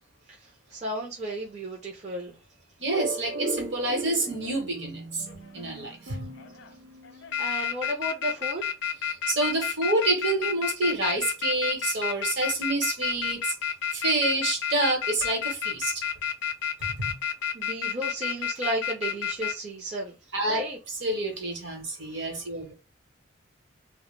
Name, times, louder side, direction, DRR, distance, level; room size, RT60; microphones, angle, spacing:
voice 1, 0.3-2.4 7.1-8.7 17.5-20.8, right 1 dB, 30° right, 0.4 m, -34 dB
voice 2, 2.8-5.2 5.5-6.2 9.3-13.5 13.9-16.0 20.3-20.6 21.0-22.7, right 2 dB, 60° right, 0.9 m, -28 dB
sound 1, 2.9-7.5, right 2 dB, 80° right, 0.7 m, -37 dB
sound 2, 4.2-4.6 5.3-5.9 6.4-6.7 7.0-19.5, left 9 dB, 55° left, 0.3 m, -30 dB
2.1 x 2.0 x 3.1 m
head